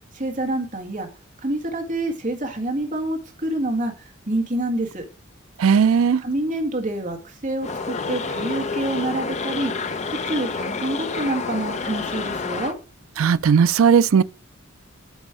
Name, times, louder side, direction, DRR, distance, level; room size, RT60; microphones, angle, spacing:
voice 1, 0.1-1.1 1.4-5.0 6.2-9.7 10.3-12.7, right 1 dB, 40° right, 1.7 m, -27 dB
voice 2, 5.6-6.2 13.2-14.2, right 6 dB, 75° right, 0.4 m, -16 dB
sound 1, 7.6-12.7, left 4 dB, 35° left, 0.6 m, -29 dB
8.0 x 4.5 x 4.8 m
head